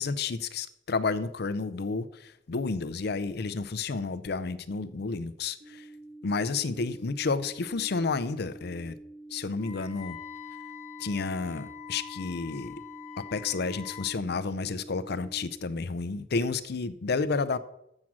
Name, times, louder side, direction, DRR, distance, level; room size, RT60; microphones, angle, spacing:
voice 1, 0.0-5.8 6.2-8.9 9.3-10.2 11.0-12.7 13.2-17.6, left 4 dB, 60° left, 14 dB, 0.5 m, -31 dB
sound 1, 5.6-15.6, right 2 dB, 35° right, 3.2 m, -47 dB
Wind instrument woodwind instrument, 9.6-14.1, left 12 dB, 45° left, 0.9 m, -45 dB
7.6 x 7.2 x 6.1 m, 0.82 s
head